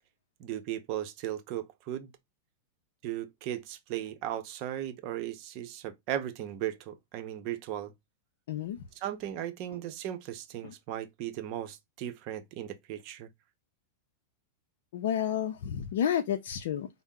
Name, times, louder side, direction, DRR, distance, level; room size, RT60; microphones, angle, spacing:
voice 1, 0.4-2.1 3.0-7.9 9.0-13.3, right 12 dB, 50° right, 0.6 m, -37 dB
voice 2, 8.5-8.8 10.6-10.7 14.9-16.9, left 9 dB, 70° left, 0.4 m, -30 dB
4.2 x 2.0 x 3.6 m
hypercardioid pair, 105°, 0 cm